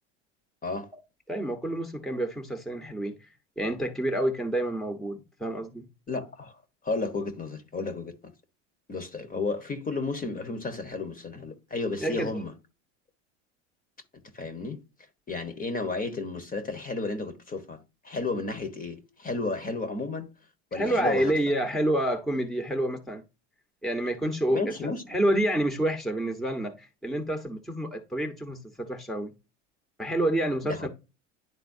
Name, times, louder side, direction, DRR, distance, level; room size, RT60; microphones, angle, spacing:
voice 1, 1.3-3.3 3.6-5.9 12.0-12.3 20.7-23.2 23.8-24.7 25.1-29.3 30.0-30.9, right 1 dB, ahead, 1.2 m, -28 dB
voice 2, 6.1-6.5 6.8-8.3 8.9-12.5 14.3-14.8 15.3-20.3 20.7-21.3 24.5-25.0 30.6-30.9, left 3 dB, 25° left, 1.3 m, -32 dB
10.5 x 3.9 x 2.7 m
hypercardioid pair, 90°, 36 cm